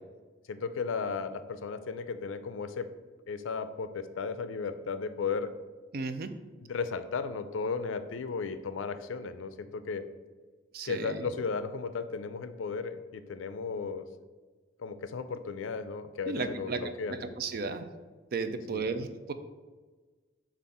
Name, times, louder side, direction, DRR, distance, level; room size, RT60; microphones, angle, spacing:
voice 1, 0.5-2.9 3.3-5.5 6.6-10.1 10.8-14.0 14.8-17.3 18.7-18.9, left 5 dB, 85° left, 11 dB, 0.4 m, -35 dB
voice 2, 5.9-6.3 10.7-11.3 16.3-16.8 17.4-17.9 18.3-19.3, right 4 dB, 50° right, 10 dB, 0.4 m, -34 dB
7.1 x 2.5 x 5.4 m, 1.4 s
head